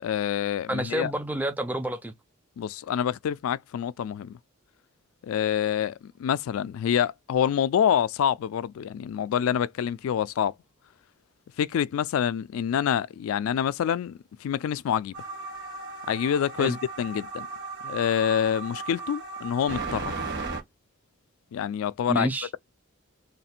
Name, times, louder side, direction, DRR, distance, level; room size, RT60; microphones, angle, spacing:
voice 1, 0.0-1.1 2.6-4.4 5.2-10.5 11.6-15.1 16.1-17.5 17.8-20.1 21.5-22.3, left 9 dB, 80° left, 0.3 m, -27 dB
voice 2, 0.7-2.1 16.6-16.8 22.1-22.5, right 1 dB, 10° right, 0.4 m, -28 dB
sound 1, 15.1-20.6, right 3 dB, 55° right, 1.5 m, -36 dB
3.2 x 2.4 x 4.2 m
head